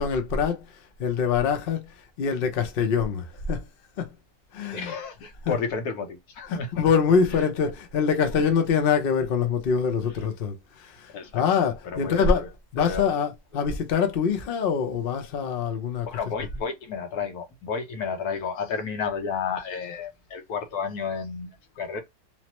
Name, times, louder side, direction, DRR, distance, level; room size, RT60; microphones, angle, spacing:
voice 1, 0.0-3.6 4.0-4.1 4.5-5.0 5.4-5.6 6.5-16.3, left 6 dB, 50° left, 0.7 m, -25 dB
voice 2, 4.6-6.9 7.3-7.4 11.1-11.4 11.8-12.5 12.8-13.1 13.5-13.7 16.0-22.0, left 5 dB, 75° left, 1.3 m, -32 dB
3.1 x 2.0 x 2.9 m
omnidirectional pair, 1.7 m